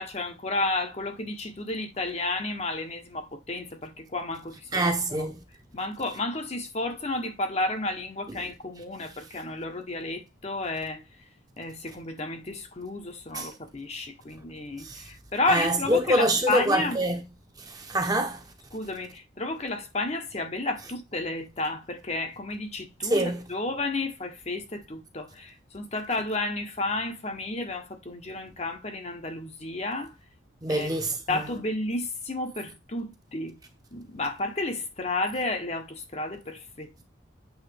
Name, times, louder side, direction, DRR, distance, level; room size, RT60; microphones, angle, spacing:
voice 1, 0.0-5.3 5.7-11.0 11.6-17.0 18.7-30.1 30.7-30.9 31.3-33.6 33.9-37.0, left 2 dB, 35° left, 0.9 m, -32 dB
voice 2, 4.7-5.3 13.3-13.5 14.8-15.0 15.5-17.2 17.7-18.4 23.1-23.4 30.6-31.4, right 1 dB, 20° right, 0.9 m, -25 dB
8.1 x 3.5 x 3.4 m
head